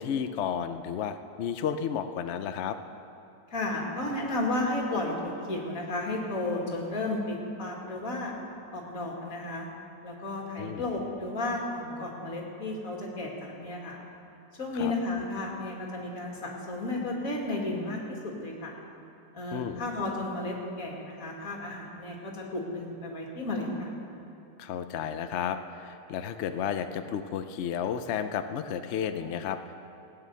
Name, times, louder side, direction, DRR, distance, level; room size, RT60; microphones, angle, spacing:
voice 1, 0.0-2.8 10.6-10.9 14.8-14.9 19.5-19.8 24.6-29.7, left 8 dB, 80° left, 9 dB, 0.6 m, -32 dB
voice 2, 3.5-8.3 8.7-9.7 10.0-14.0 14.6-18.7 19.3-23.9, left 2 dB, 50° left, -1 dB, 2.5 m, -33 dB
17.5 x 9.2 x 6.9 m, 2.8 s
omnidirectional pair, 1.9 m